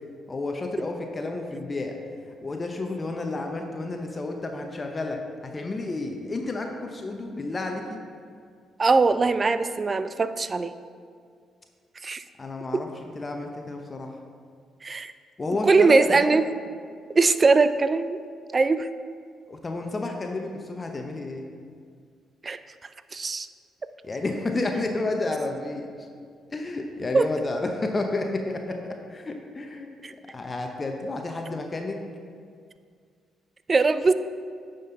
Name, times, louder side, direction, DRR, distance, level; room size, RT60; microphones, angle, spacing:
voice 1, 0.3-2.0 2.4-8.0 12.4-14.2 15.4-16.4 19.5-21.4 24.0-25.9 26.5-29.9 30.3-32.0, left 2 dB, 35° left, 3 dB, 0.9 m, -31 dB
voice 2, 8.8-10.7 12.0-12.2 12.7-12.8 14.8-15.1 15.6-16.5 17.2-18.2 18.5-18.9 22.4-22.6 23.1-23.5 27.1-27.3 30.0-30.1 33.7-34.1, right 3 dB, 35° right, 12 dB, 0.4 m, -21 dB
9.3 x 5.4 x 3.9 m, 2.1 s
hypercardioid pair, 50°, 0 cm